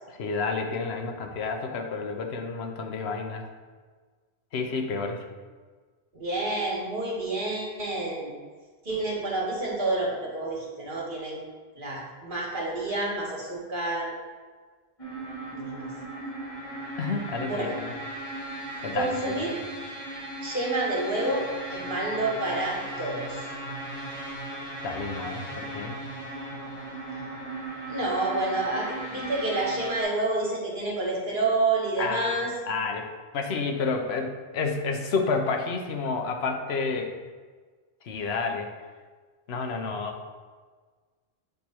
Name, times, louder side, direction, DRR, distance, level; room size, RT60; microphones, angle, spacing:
voice 1, 0.1-3.5 4.5-5.2 17.0-17.9 18.8-19.4 24.8-26.0 32.0-33.1 33.3-37.1 38.0-38.7 39.5-40.4, left 4 dB, 85° left, 4 dB, 1.0 m, -30 dB
voice 2, 6.1-8.3 8.8-11.4 11.8-14.1 15.5-15.9 17.4-17.7 18.9-19.5 20.4-23.5 27.9-32.5, right 2 dB, 55° right, -4 dB, 1.6 m, -29 dB
sound 1, 15.0-30.0, right 1 dB, 35° left, 1.4 m, -37 dB
7.6 x 3.1 x 4.3 m, 1.5 s
omnidirectional pair, 1.0 m